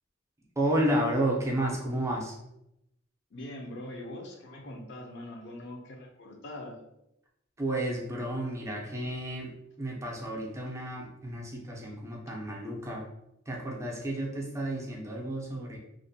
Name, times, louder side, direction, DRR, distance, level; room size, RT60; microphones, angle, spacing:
voice 1, 0.6-2.3 7.6-9.5 9.8-13.0 13.5-15.8, right 1 dB, 15° right, -2 dB, 0.4 m, -31 dB
voice 2, 3.3-6.8, left 1 dB, 60° left, 1 dB, 0.5 m, -42 dB
2.4 x 2.2 x 2.6 m, 0.83 s
head